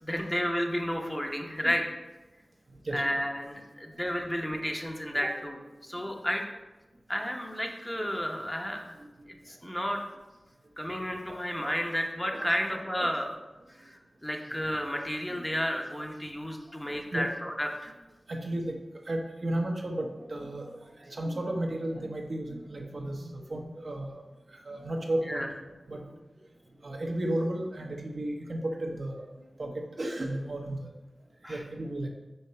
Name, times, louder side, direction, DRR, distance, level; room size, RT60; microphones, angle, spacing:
voice 1, 0.0-1.8 2.9-6.4 7.1-8.8 9.5-10.0 10.8-13.3 13.8-17.9 25.3-25.5 31.4-31.6, equal, 15° left, 1 dB, 0.8 m, -32 dB
voice 2, 12.3-13.1 15.3-15.4 17.1-17.3 18.3-18.8 19.0-24.2 24.5-25.5 25.9-26.1 26.8-29.3 29.6-29.7 30.0-30.9 31.5-32.1, right 1 dB, 60° right, 1 dB, 0.9 m, -34 dB
5.6 x 4.3 x 4.3 m, 1.1 s
wide cardioid pair, 65°, 0 cm